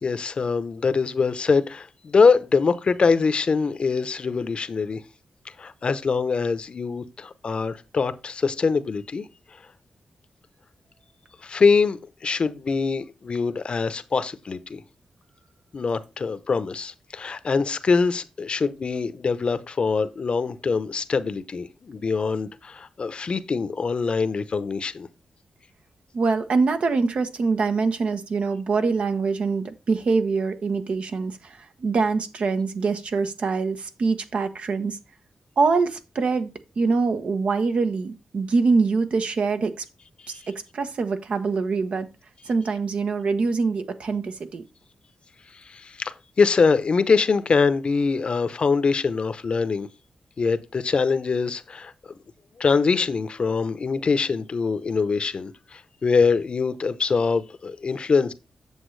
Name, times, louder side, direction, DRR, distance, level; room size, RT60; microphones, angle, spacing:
voice 1, 0.0-5.0 5.6-9.3 9.5-9.6 11.4-14.8 15.7-25.1 40.2-40.4 45.5-49.9 50.4-51.9 52.6-58.3, left 4 dB, 50° left, 0.7 m, -23 dB
voice 2, 26.1-35.0 35.6-39.8 40.3-42.1 42.4-44.6, right 4 dB, 65° right, 1.0 m, -24 dB
8.2 x 7.1 x 3.2 m
cardioid pair, 75°, 2 cm